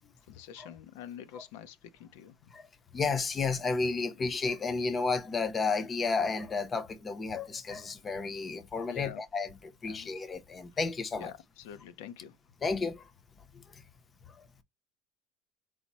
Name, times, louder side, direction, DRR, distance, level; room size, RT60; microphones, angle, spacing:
voice 1, 0.3-2.3 8.9-9.2 9.8-10.1 11.2-12.3, left 9 dB, 85° left, 0.5 m, -45 dB
voice 2, 2.9-11.3 12.6-13.0 13.7-13.8 14.3-14.5, left 4 dB, 20° left, 0.6 m, -32 dB
4.8 x 2.1 x 4.0 m
cardioid pair, 155°, 0 cm